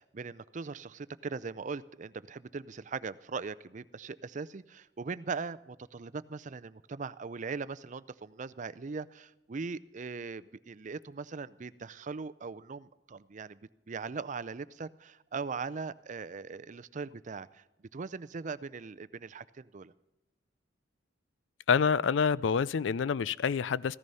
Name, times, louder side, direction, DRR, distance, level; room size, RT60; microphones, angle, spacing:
voice 1, 0.0-13.6 13.9-17.6 17.9-19.9, right 4 dB, 40° right, 16 dB, 0.5 m, -40 dB
voice 2, 21.7-24.0, left 6 dB, 80° left, 20 dB, 0.4 m, -27 dB
15.5 x 14.0 x 5.5 m, 0.95 s
head